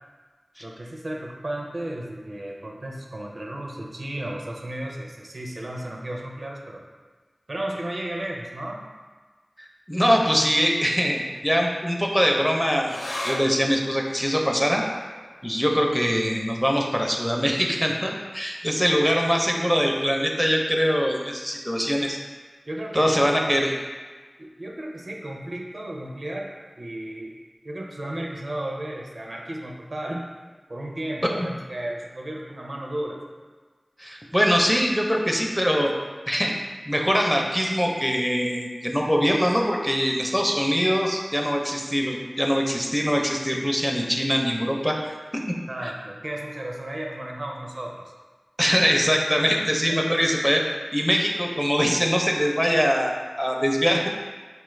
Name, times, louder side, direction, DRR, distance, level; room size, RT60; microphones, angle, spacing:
voice 1, 0.6-6.8 7.5-8.8 18.7-18.8 22.7-23.2 24.4-27.3 27.6-30.3 30.7-33.2 45.7-48.1 49.5-50.1, right 1 dB, 70° right, 0 dB, 0.5 m, -34 dB
voice 2, 9.6-14.8 15.4-22.2 22.9-23.7 31.4-31.5 34.0-35.9 36.3-36.5 36.9-45.0 45.3-45.6 45.8-45.9 48.6-50.6 50.9-54.1, equal, 5° left, 0 dB, 0.5 m, -23 dB
sound 1, 12.8-19.6 19.9-20.0 20.4-21.0 21.6-21.7, left 1 dB, 90° left, 0.4 m, -40 dB
4.5 x 2.3 x 3.1 m, 1.4 s
wide cardioid pair, 45°, 0 cm